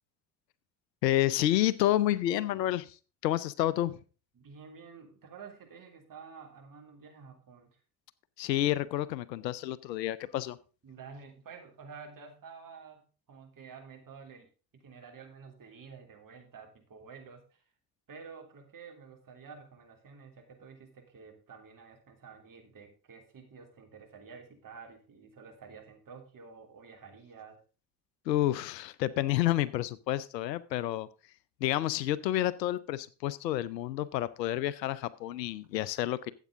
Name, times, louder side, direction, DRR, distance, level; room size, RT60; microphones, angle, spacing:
voice 1, 1.0-3.0 3.2-4.0 8.4-10.6 28.3-31.1 31.6-36.3, left 13 dB, 85° left, 19 dB, 0.7 m, -29 dB
voice 2, 4.3-7.8 10.8-17.6 18.1-27.6, right 5 dB, 40° right, 3 dB, 3.3 m, -50 dB
13.0 x 8.3 x 3.7 m, 0.34 s
hypercardioid pair, 55°, 49 cm